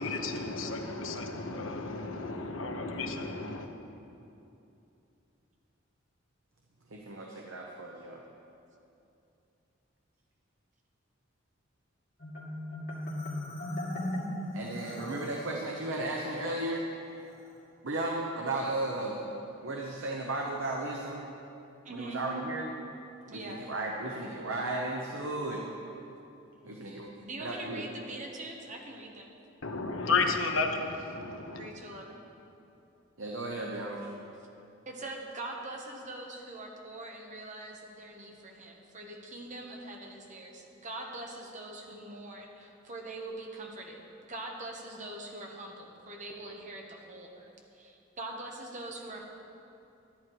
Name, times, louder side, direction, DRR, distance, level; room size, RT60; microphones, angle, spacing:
voice 1, 0.0-3.7 29.6-31.7, left 3 dB, 80° left, 4 dB, 1.0 m, -32 dB
voice 2, 6.9-8.2 14.5-16.8 17.8-19.2 19.6-21.2 21.9-22.7 23.3-25.6 26.6-27.1 27.4-27.8 33.2-34.0 41.9-42.0, right 2 dB, 75° right, -1 dB, 1.0 m, -35 dB
Marimba xylophone, 12.2-15.6, left 1 dB, 55° left, 2.2 m, -37 dB
voice 3, 21.8-22.2 23.3-23.7 27.2-29.3 31.6-32.2 34.8-49.3, right 2 dB, 40° right, 1 dB, 1.3 m, -43 dB
12.0 x 10.5 x 4.7 m, 2.8 s
head